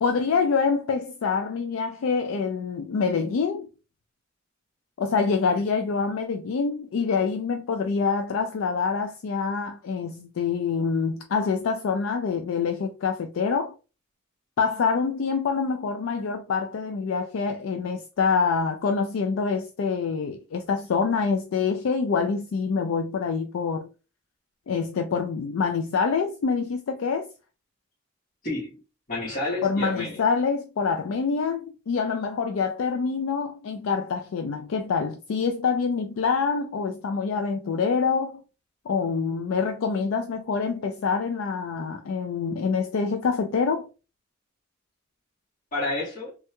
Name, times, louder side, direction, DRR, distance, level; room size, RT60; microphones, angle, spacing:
voice 1, 0.0-3.7 5.0-13.7 14.6-23.9 24.7-27.3 29.6-38.4 38.9-43.9, left 5 dB, 80° left, 0.4 m, -26 dB
voice 2, 29.1-30.2 45.7-46.3, left 2 dB, 45° left, 1.7 m, -30 dB
3.3 x 2.9 x 2.2 m
head